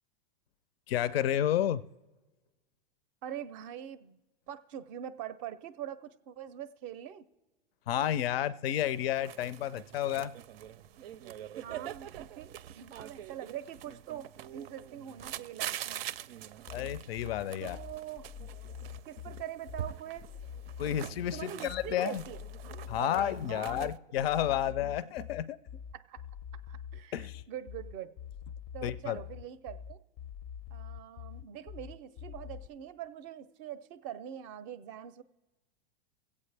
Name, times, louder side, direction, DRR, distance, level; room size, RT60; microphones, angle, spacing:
voice 1, 0.9-1.8 7.9-10.3 16.7-17.8 20.8-22.2 22.9-25.6 27.1-27.4 28.8-29.2, left 11 dB, 85° left, 17 dB, 0.5 m, -31 dB
voice 2, 3.2-4.2 4.5-7.3 11.6-16.1 17.6-18.3 19.1-20.3 21.3-23.9 24.4-24.8 25.2-25.3 25.9-26.2 26.7-28.1 28.7-30.0 30.7-35.2, right 10 dB, 30° right, 14 dB, 0.4 m, -43 dB
sound 1, 8.7-24.0, right 11 dB, 85° right, 0.5 m, -44 dB
sound 2, 16.7-32.7, left 8 dB, 30° left, 0.4 m, -45 dB
24.5 x 8.4 x 3.3 m, 1.2 s
supercardioid pair, 150°, 29 cm